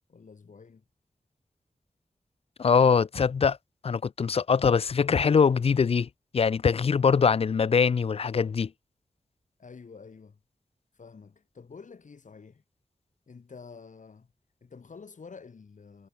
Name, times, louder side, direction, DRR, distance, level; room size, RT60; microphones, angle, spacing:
voice 1, 0.1-0.8 9.6-10.4 10.9-12.6 13.3-14.3 14.6-16.1, left 5 dB, 70° left, 1.5 m, -48 dB
voice 2, 2.6-3.6 3.8-6.1 6.3-8.7, left 6 dB, 45° left, 0.4 m, -23 dB
cardioid pair, 45°, 14 cm